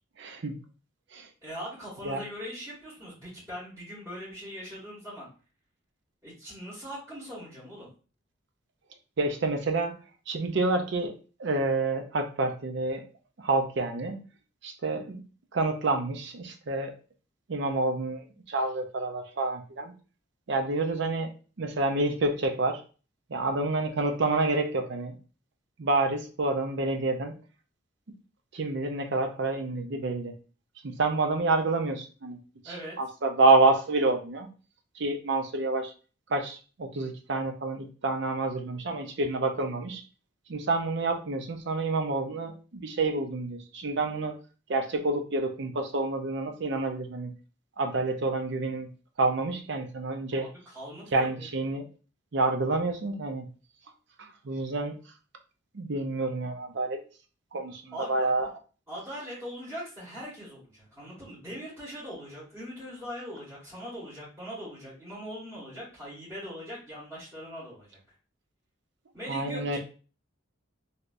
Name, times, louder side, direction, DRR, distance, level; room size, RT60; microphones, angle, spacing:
voice 1, 0.2-0.6 1.1-1.3 2.0-2.2 9.2-13.1 13.4-14.2 14.6-15.2 15.5-16.9 17.5-19.9 20.5-21.3 21.6-22.8 23.3-25.2 25.8-27.3 28.5-30.3 30.8-34.5 35.0-35.9 36.3-40.0 40.5-44.4 44.7-47.3 47.8-48.9 49.2-50.5 51.1-51.8 52.3-53.5 54.4-55.0 55.7-57.0 57.5-58.5 69.3-69.8, right 3 dB, 60° right, 5 dB, 0.5 m, -28 dB
voice 2, 1.4-5.3 6.2-7.9 32.6-33.0 50.3-51.5 57.9-58.3 58.9-68.0 69.1-69.8, equal, 15° right, -12 dB, 1.7 m, -41 dB
3.3 x 2.8 x 2.5 m, 0.36 s
head